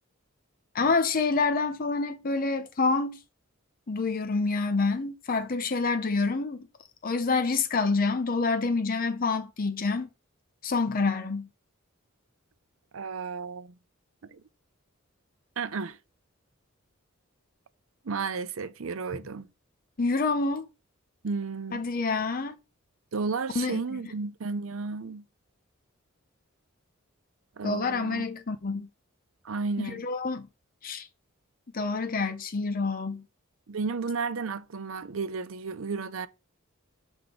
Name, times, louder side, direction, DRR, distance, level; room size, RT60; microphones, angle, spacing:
voice 1, 0.7-3.2 3.9-6.7 7.0-10.1 10.6-11.5 20.0-20.7 21.7-22.5 23.6-24.0 27.6-28.9 29.8-30.5 30.8-31.1 31.7-33.2, left 4 dB, 45° left, 0.6 m, -27 dB
voice 2, 12.9-13.7 14.2-14.4 15.6-16.0 18.0-19.5 21.2-21.8 23.1-25.2 27.6-28.2 29.4-30.1 33.7-36.3, right 4 dB, 75° right, 0.6 m, -33 dB
7.8 x 3.6 x 5.0 m
head